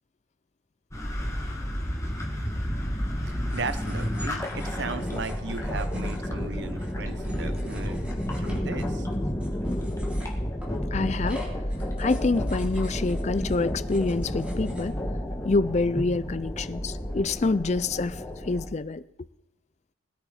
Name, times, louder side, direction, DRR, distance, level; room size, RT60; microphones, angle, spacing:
sound 1, 0.9-18.7, equal, 15° left, 1.9 m, -31 dB
voice 1, 3.2-8.0 8.4-9.1, right 4 dB, 60° right, 0.7 m, -36 dB
sound 2, 3.5-14.9, left 1 dB, 5° right, 3.3 m, -48 dB
voice 2, 10.9-11.5 12.0-15.0 15.4-18.2 18.5-19.0, left 3 dB, 35° left, 0.4 m, -26 dB
20.5 x 10.0 x 4.3 m
head